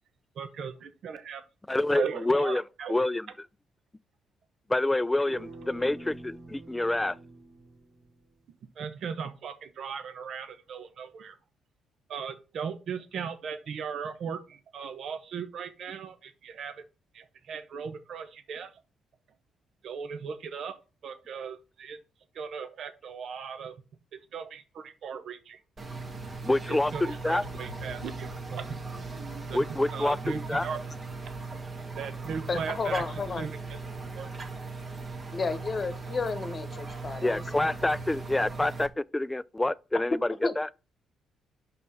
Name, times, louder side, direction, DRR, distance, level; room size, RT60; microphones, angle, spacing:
voice 1, 0.3-1.4 1.9-2.9 8.8-11.4 12.1-16.8 17.1-18.7 19.8-20.7 21.0-22.0 22.3-23.7 24.3-25.6 26.7-28.7 29.5-29.7 29.9-30.8 32.0-33.0 33.4-33.5 34.1-34.3, right 6 dB, 65° right, 0.9 m, -37 dB
voice 2, 1.7-2.6 2.9-3.3 4.7-7.2 26.4-27.4 29.5-30.7 37.2-40.7, left 2 dB, 10° left, 0.3 m, -27 dB
sound 1, 5.3-8.3, right 2 dB, 80° right, 2.4 m, -46 dB
sound 2, 25.8-38.9, right 3 dB, 30° right, 1.5 m, -39 dB
voice 3, 32.5-33.5 35.3-37.7 40.4-40.5, left 4 dB, 35° left, 1.1 m, -32 dB
5.5 x 4.4 x 5.5 m
cardioid pair, 90°, 0 cm